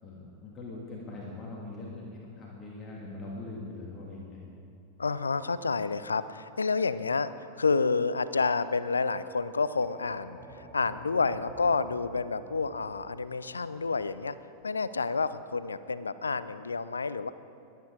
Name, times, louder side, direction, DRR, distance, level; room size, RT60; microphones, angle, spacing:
voice 1, 0.0-4.4 13.8-13.9, left 2 dB, 25° left, -4 dB, 2.6 m, -42 dB
voice 2, 5.0-7.3 7.6-14.4 14.6-17.3, left 4 dB, 75° left, 15 dB, 0.5 m, -29 dB
sound 1, 9.8-14.8, right 1 dB, 10° right, 2.3 m, -49 dB
22.0 x 9.6 x 4.9 m, 2.6 s
figure-of-eight pair, 90°, 0 cm